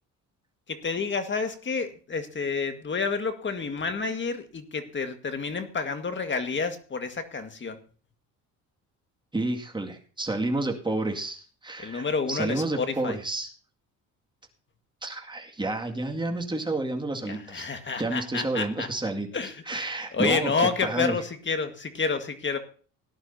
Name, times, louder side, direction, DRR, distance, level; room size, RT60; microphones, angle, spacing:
voice 1, 0.7-7.8 11.8-13.2 17.3-18.9 19.3-19.8 20.1-22.6, left 4 dB, 35° left, 8 dB, 1.8 m, -29 dB
voice 2, 9.3-13.5 15.0-17.7 18.0-19.3 19.7-21.2, right 2 dB, 15° right, 2 dB, 2.2 m, -30 dB
18.0 x 11.0 x 2.8 m, 0.40 s
cardioid pair, 85°, 34 cm